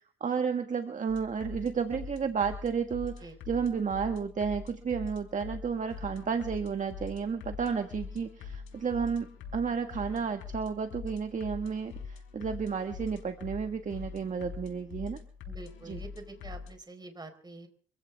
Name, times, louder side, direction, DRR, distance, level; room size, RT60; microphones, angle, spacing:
voice 1, 0.2-9.3 9.5-15.2 15.8-16.0, right 6 dB, 40° right, 6 dB, 1.6 m, -32 dB
sound 1, 1.1-16.7, left 5 dB, 85° left, 4.7 m, -44 dB
voice 2, 15.5-17.7, right 2 dB, 20° right, 7 dB, 4.4 m, -46 dB
25.5 x 15.5 x 3.5 m, 0.42 s
cardioid pair, 90°, 20 cm